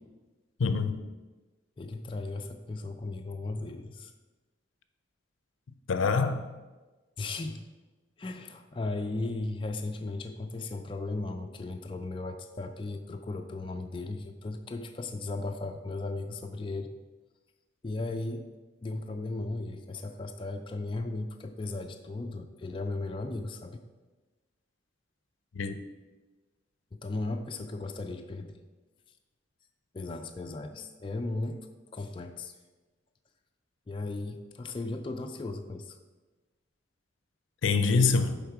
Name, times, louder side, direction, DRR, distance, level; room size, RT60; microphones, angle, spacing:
voice 1, 0.6-1.0 5.9-6.4 25.5-25.8 37.6-38.4, left 4 dB, 85° left, 0.5 m, -25 dB
voice 2, 1.8-4.1 7.2-7.6 8.2-16.9 17.8-18.4 18.8-23.8 26.9-28.6 29.9-31.6 31.9-32.5 33.9-36.0, left 2 dB, 25° left, 0.3 m, -36 dB
8.4 x 3.6 x 4.6 m
head